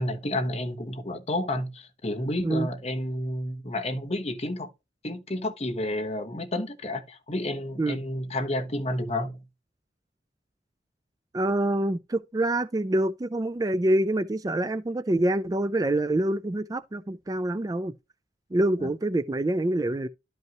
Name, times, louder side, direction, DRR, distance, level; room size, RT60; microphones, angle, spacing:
voice 1, 0.0-4.7 5.0-9.4 18.8-18.9, left 1 dB, 35° left, 1.1 m, -30 dB
voice 2, 11.3-17.9 18.5-20.1, right 1 dB, 20° right, 0.3 m, -26 dB
12.0 x 5.3 x 3.0 m
head